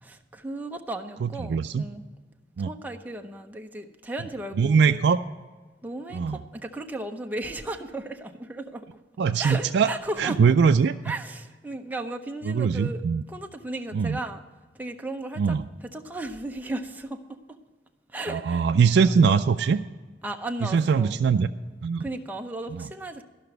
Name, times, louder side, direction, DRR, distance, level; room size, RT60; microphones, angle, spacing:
voice 1, 0.0-2.1 2.6-5.0 5.8-8.9 9.4-10.4 11.0-13.0 13.3-14.4 14.7-15.6 15.9-17.6 18.1-18.7 19.0-19.1 20.2-21.2 22.0-23.2, right 2 dB, 10° right, 4 dB, 0.7 m, -35 dB
voice 2, 1.2-1.8 2.6-2.7 4.5-5.2 6.1-6.4 9.2-9.9 10.2-10.9 12.5-13.2 13.9-14.2 15.4-15.6 18.3-19.8 20.6-21.5 21.8-22.0 22.7-22.9, right 6 dB, 75° right, 7 dB, 0.4 m, -22 dB
13.5 x 5.9 x 7.8 m, 1.3 s
head